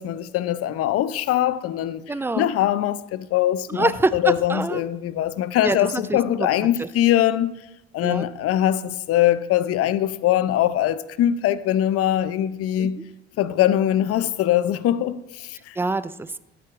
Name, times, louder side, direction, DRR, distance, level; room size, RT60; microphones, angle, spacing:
voice 1, 0.0-2.0 2.4-7.5 7.9-13.0 13.4-15.8, left 12 dB, 50° left, 0.5 m, -22 dB
voice 2, 2.1-2.5 3.7-4.8 5.6-6.5 6.8-6.9 8.0-8.3 12.8-12.9 15.8-16.4, right 2 dB, 10° right, 0.3 m, -25 dB
13.5 x 4.7 x 3.6 m
hypercardioid pair, 60°, 31 cm